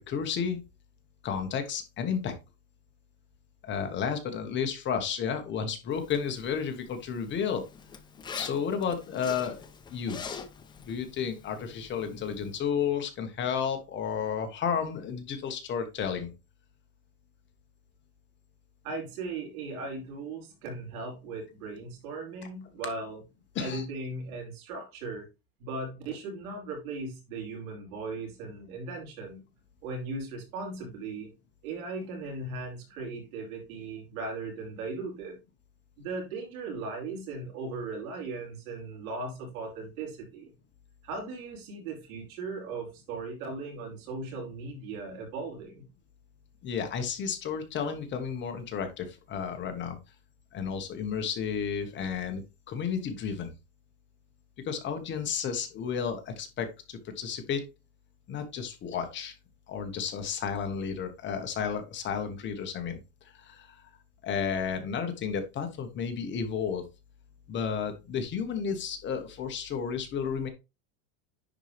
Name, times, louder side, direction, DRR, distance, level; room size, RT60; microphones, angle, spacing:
voice 1, 0.1-0.6 1.2-2.3 3.6-7.6 8.4-9.6 9.9-10.2 10.8-16.3 23.5-23.8 46.6-50.0 50.5-53.5 54.6-57.6 58.3-59.3 59.7-63.0 63.3-63.8 64.2-66.9 67.5-70.5, left 7 dB, 25° left, 1.3 m, -32 dB
Zipper (clothing), 5.9-12.6, left 6 dB, 10° left, 0.5 m, -45 dB
voice 2, 18.8-23.2 23.6-25.2 25.6-29.4 29.8-31.3 31.6-35.4 36.0-40.5 41.0-45.8, right 3 dB, 75° right, 5.1 m, -38 dB
10.0 x 4.5 x 3.3 m
supercardioid pair, 155°, 42 cm